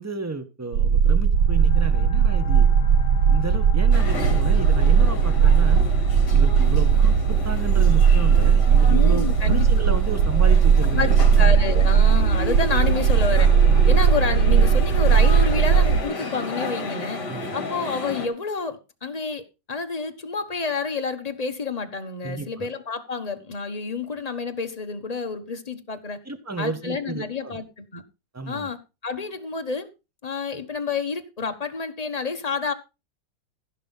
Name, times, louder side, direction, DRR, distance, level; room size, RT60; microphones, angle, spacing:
voice 1, 0.0-2.7 3.3-5.9 6.3-11.1 11.4-11.6 13.7-14.0 17.3-17.6 22.2-22.7 26.2-27.6 28.3-28.7, right 3 dB, 10° right, 1.1 m, -32 dB
sound 1, 0.7-16.0, right 7 dB, 65° right, 1.2 m, -17 dB
sound 2, 1.3-12.7, left 8 dB, 85° left, 1.7 m, -38 dB
sound 3, 3.9-18.3, left 2 dB, 60° left, 3.1 m, -33 dB
voice 2, 6.6-7.0 8.9-9.7 10.9-11.1 11.4-13.5 13.9-17.2 17.5-19.4 19.7-26.2 26.6-28.0 28.5-29.9 30.2-32.7, left 4 dB, 25° left, 1.0 m, -29 dB
15.5 x 5.8 x 5.6 m
omnidirectional pair, 2.1 m